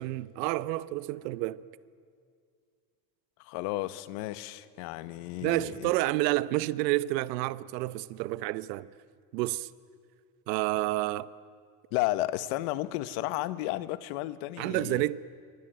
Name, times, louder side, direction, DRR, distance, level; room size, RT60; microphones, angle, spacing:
voice 1, 0.0-1.6 5.4-8.9 9.3-9.7 10.5-11.3 14.6-15.2, right 17 dB, 90° right, 0.9 m, -29 dB
voice 2, 3.4-5.9 11.9-15.0, left 16 dB, 65° left, 1.3 m, -33 dB
27.5 x 24.0 x 9.0 m
cardioid pair, 160°, 48 cm